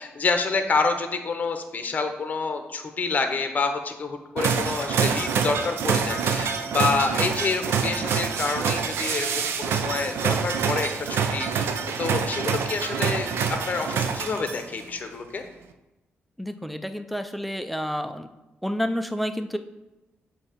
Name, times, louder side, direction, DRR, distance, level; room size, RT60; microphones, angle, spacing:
voice 1, 0.0-11.7 12.0-15.4, left 4 dB, 40° left, 6 dB, 0.7 m, -28 dB
sound 1, 4.4-14.8, right 6 dB, 80° right, 0.5 m, -26 dB
voice 2, 16.4-18.3 18.6-19.6, equal, ahead, 9 dB, 0.4 m, -29 dB
7.2 x 2.7 x 5.0 m, 1.0 s
cardioid pair, 95°, 4 cm